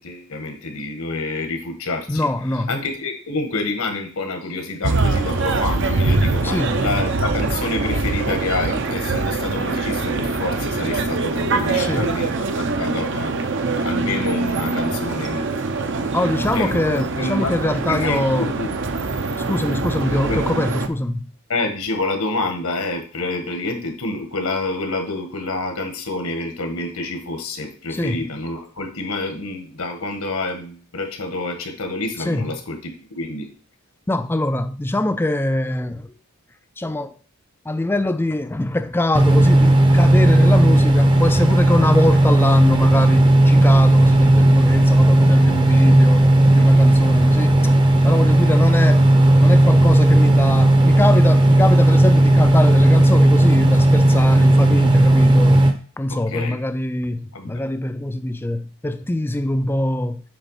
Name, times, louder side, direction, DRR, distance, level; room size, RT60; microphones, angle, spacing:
voice 1, 0.0-2.3 2.7-16.1 16.5-18.7 20.1-20.4 21.5-33.5 47.1-47.7 56.3-56.6 57.3-57.6, left 2 dB, 80° left, 1.6 m, -28 dB
voice 2, 2.1-2.7 6.4-6.8 11.8-12.1 16.1-18.5 19.4-21.2 27.9-28.2 32.2-32.4 34.1-36.2 36.8-37.2 37.7-47.7 48.0-49.0 49.4-55.7 56.0-60.2, left 1 dB, 10° left, 0.3 m, -23 dB
sound 1, 4.8-20.9, right 3 dB, 55° right, 0.7 m, -23 dB
sound 2, 39.1-55.7, right 1 dB, 20° right, 0.7 m, -14 dB
7.9 x 3.5 x 5.6 m
head